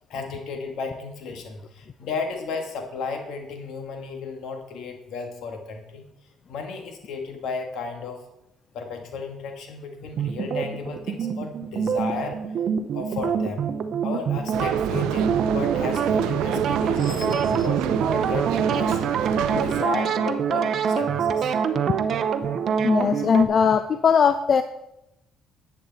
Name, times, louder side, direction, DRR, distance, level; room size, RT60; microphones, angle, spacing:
voice 1, 0.1-6.0 6.5-8.2 8.7-12.4 12.9-13.6 14.0-18.5 18.7-19.0 19.5-21.6, left 4 dB, 75° left, 4 dB, 1.8 m, -34 dB
sound 1, 10.2-23.4, right 7 dB, 60° right, 0.7 m, -25 dB
sound 2, 14.5-19.8, right 12 dB, 90° right, 0.4 m, -28 dB
voice 2, 17.0-17.6 22.8-24.6, left 6 dB, 45° left, 10 dB, 0.5 m, -21 dB
10.5 x 8.5 x 4.1 m, 0.86 s
cardioid pair, 90°, 0 cm